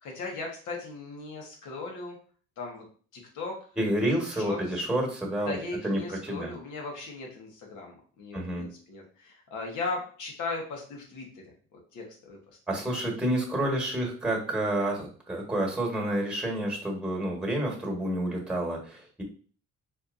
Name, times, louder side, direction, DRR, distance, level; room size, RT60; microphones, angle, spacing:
voice 1, 0.0-2.2 2.6-2.9 3.1-3.6 3.9-4.8 5.4-11.4 11.7-12.4 12.7-12.8, left 3 dB, 80° left, 0 dB, 1.3 m, -38 dB
voice 2, 3.8-5.6 5.8-6.5 8.3-8.7 12.7-19.2, right 1 dB, 5° right, 0 dB, 1.4 m, -29 dB
4.3 x 2.7 x 2.6 m, 0.42 s
cardioid pair, 90°, 30 cm